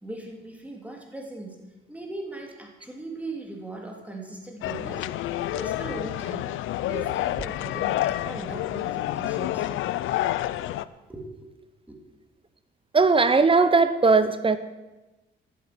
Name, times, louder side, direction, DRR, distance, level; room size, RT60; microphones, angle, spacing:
voice 1, 0.0-1.6 1.9-5.1 5.5-6.5 6.9-9.7 10.2-10.3 10.7-10.8 11.1-11.5 11.9-12.0, right 2 dB, 5° right, 0 dB, 3.1 m, -39 dB
sound 1, 4.6-10.8, left 14 dB, 85° left, 0.5 m, -29 dB
voice 2, 12.9-14.6, right 4 dB, 25° right, 12 dB, 0.9 m, -19 dB
10.5 x 9.6 x 7.9 m, 1.1 s
cardioid pair, 90°, 20 cm